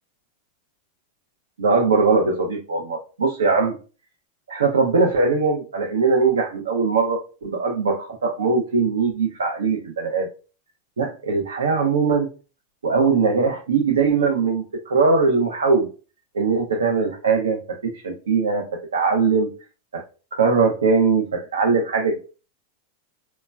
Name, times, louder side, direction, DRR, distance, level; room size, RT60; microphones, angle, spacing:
voice 1, 1.6-3.8 4.5-10.3 11.0-12.3 12.8-15.9 16.3-18.7 18.9-19.5 19.9-20.0 20.3-22.2, right 4 dB, 80° right, 2 dB, 0.5 m, -21 dB
3.0 x 2.1 x 2.2 m, 0.34 s
hypercardioid pair, 95°, 0 cm